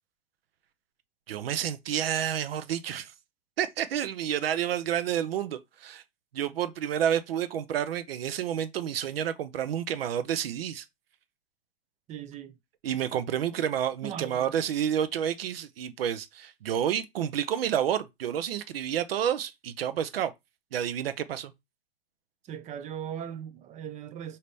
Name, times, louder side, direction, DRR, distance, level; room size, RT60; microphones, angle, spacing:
voice 1, 1.3-3.1 3.6-6.0 6.3-10.8 12.8-20.3 20.7-21.5, right 9 dB, 75° right, 0.7 m, -29 dB
voice 2, 12.1-12.6 14.0-14.5 22.4-24.4, right 9 dB, 25° right, 0.5 m, -38 dB
5.2 x 2.8 x 3.2 m
hypercardioid pair, 110°, 30 cm